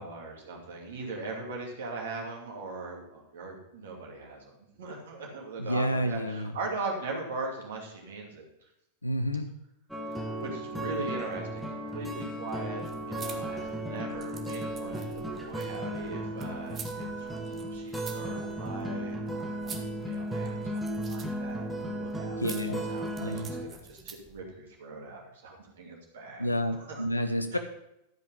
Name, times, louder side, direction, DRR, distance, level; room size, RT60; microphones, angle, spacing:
voice 1, 0.0-4.4 4.8-8.4 10.4-15.1 15.3-22.4 22.9-26.5 26.9-27.0 27.5-27.6, right 3 dB, 60° right, 0 dB, 2.4 m, -40 dB
voice 2, 5.6-6.6 9.0-9.5 22.4-22.8 23.2-23.5 26.4-27.6, equal, 85° left, 9 dB, 0.8 m, -30 dB
sound 1, 9.9-23.6, right 1 dB, ahead, 1.4 m, -35 dB
sound 2, 12.7-24.4, right 6 dB, 25° right, 1.2 m, -49 dB
12.0 x 5.4 x 5.3 m, 0.83 s
figure-of-eight pair, 90°, 0 cm